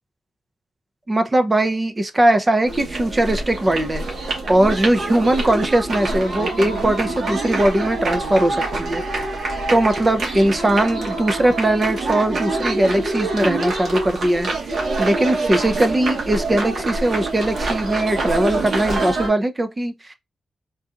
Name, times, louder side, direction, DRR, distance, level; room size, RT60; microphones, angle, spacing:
voice 1, 1.1-4.0 4.5-9.0 9.7-20.1, right 1 dB, 25° right, 0.5 m, -20 dB
sound 1, 2.6-19.3, right 2 dB, 65° right, 1.3 m, -25 dB
3.8 x 2.5 x 2.4 m
cardioid pair, 90°, 0 cm